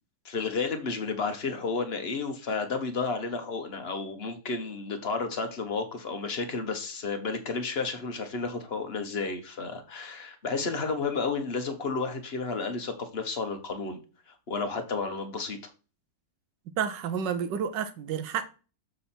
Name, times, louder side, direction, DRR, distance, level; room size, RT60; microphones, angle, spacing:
voice 1, 0.2-14.0 14.3-15.7, left 4 dB, 40° left, 1.3 m, -32 dB
voice 2, 16.8-18.5, right 7 dB, 85° right, 1.5 m, -30 dB
7.2 x 5.5 x 4.3 m
omnidirectional pair, 1.9 m